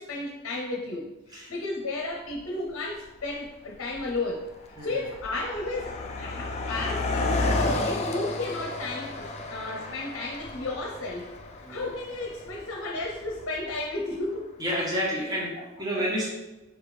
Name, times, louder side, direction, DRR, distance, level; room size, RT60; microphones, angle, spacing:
voice 1, 0.0-4.5 4.8-9.1 9.5-11.2 11.7-14.5 15.6-15.7, left 2 dB, 60° left, -1 dB, 0.6 m, -33 dB
Car passing by, 2.3-2.4 3.2-3.4 3.7-14.1, left 2 dB, 30° left, 0.3 m, -32 dB
voice 2, 14.6-15.5 15.8-16.3, equal, 15° right, -4 dB, 0.9 m, -29 dB
4.4 x 3.4 x 3.2 m, 1.1 s
head